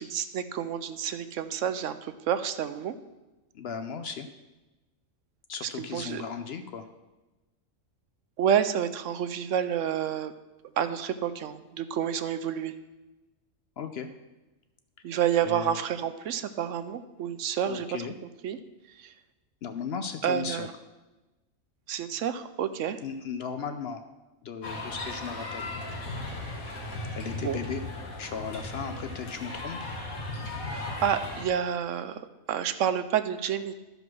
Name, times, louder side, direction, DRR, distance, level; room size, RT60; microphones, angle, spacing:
voice 1, 0.0-3.0 5.6-6.2 8.4-10.3 10.8-12.7 15.0-17.9 18.4-18.6 19.0-19.1 20.2-20.7 21.9-23.0 27.4-27.6 30.7-32.2 32.5-33.7, right 9 dB, 70° right, 11 dB, 0.9 m, -29 dB
voice 2, 3.5-4.3 5.5-6.9 13.8-14.1 15.4-15.8 17.7-18.1 19.6-20.7 23.0-24.0 24.4-25.7 27.1-27.8 28.2-29.8, left 6 dB, 60° left, 8 dB, 0.7 m, -36 dB
sound 1, 24.6-31.4, left 2 dB, 80° left, 2.1 m, -36 dB
12.5 x 5.3 x 6.0 m, 1.1 s
omnidirectional pair, 1.4 m